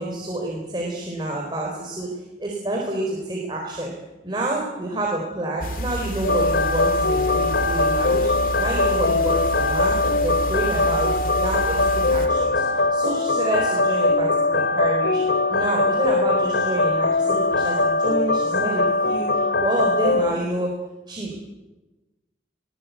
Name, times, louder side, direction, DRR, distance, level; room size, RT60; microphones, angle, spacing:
voice 1, 0.0-4.0 4.2-21.4, right 1 dB, 25° right, -1 dB, 4.2 m, -28 dB
sound 1, 5.6-12.3, right 1 dB, 50° left, 2.7 m, -30 dB
sound 2, 6.2-20.3, left 2 dB, 85° left, 2.2 m, -21 dB
21.5 x 19.5 x 8.4 m, 1.1 s
head